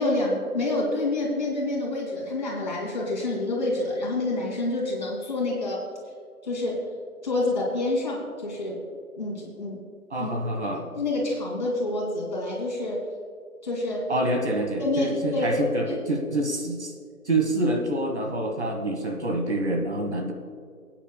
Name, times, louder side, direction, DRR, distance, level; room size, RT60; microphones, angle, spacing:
voice 1, 0.0-5.8 6.4-6.8 7.2-8.8 9.2-9.8 10.2-10.3 10.9-13.0 13.6-14.0 14.8-15.5 15.9-16.0, left 2 dB, 30° left, -3 dB, 2.4 m, -27 dB
voice 2, 10.1-10.9 14.1-16.9 17.3-20.3, right 1 dB, 45° right, 2 dB, 1.4 m, -26 dB
22.5 x 9.2 x 2.2 m, 2.1 s
figure-of-eight pair, 175°, 45 cm